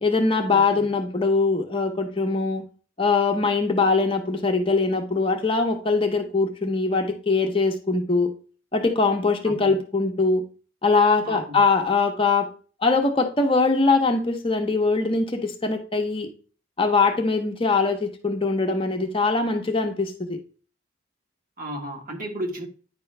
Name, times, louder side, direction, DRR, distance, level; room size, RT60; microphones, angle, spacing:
voice 1, 0.0-2.6 3.0-8.3 8.7-10.4 10.8-12.5 12.8-16.3 16.8-20.4, left 3 dB, 25° left, 3 dB, 0.9 m, -22 dB
voice 2, 0.5-0.8 9.4-9.7 11.2-11.6 21.6-22.7, right 1 dB, 40° right, 2 dB, 1.5 m, -33 dB
9.7 x 5.3 x 3.3 m, 0.38 s
head